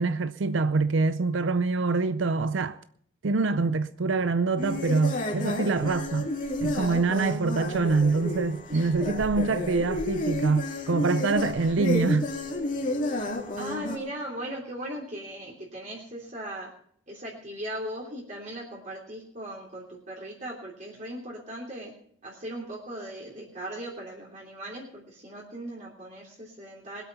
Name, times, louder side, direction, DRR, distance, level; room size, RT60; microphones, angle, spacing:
voice 1, 0.0-2.8 3.2-6.3 6.6-12.3, right 3 dB, 80° right, 0.5 m, -25 dB
sound 1, 4.6-14.0, left 1 dB, 40° left, 2.5 m, -31 dB
voice 2, 8.7-9.1 13.6-16.7 17.1-21.9 22.2-27.0, right 1 dB, 40° right, 3.2 m, -38 dB
21.0 x 8.4 x 5.6 m
head